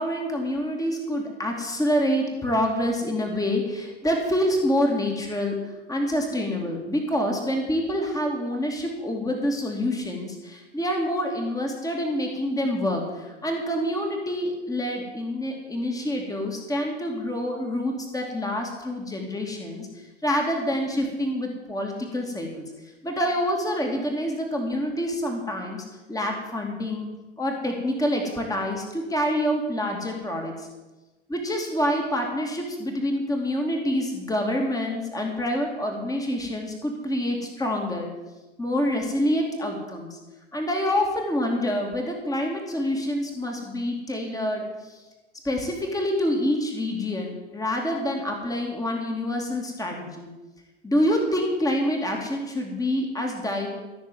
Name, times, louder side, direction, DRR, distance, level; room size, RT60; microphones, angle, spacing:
voice 1, 0.0-27.1 27.4-30.7 31.3-38.1 38.6-40.2 40.5-45.0 45.4-50.3 50.8-53.7, equal, 10° left, 1 dB, 2.5 m, -27 dB
15.0 x 6.7 x 9.6 m, 1.1 s
figure-of-eight pair, 75°, 35 cm